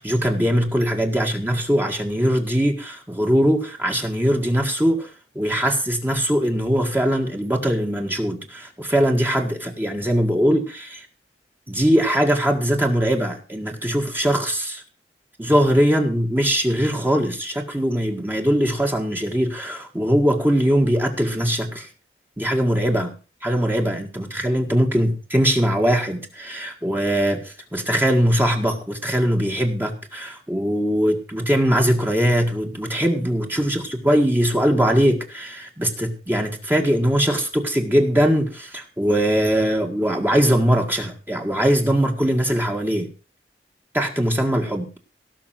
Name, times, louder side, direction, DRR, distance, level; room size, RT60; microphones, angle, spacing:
voice 1, 0.0-5.1 5.4-11.1 11.7-14.8 15.4-21.9 22.4-23.1 23.4-43.1 43.9-44.9, equal, 10° right, 2 dB, 1.8 m, -21 dB
17.5 x 6.1 x 7.6 m, 0.35 s
head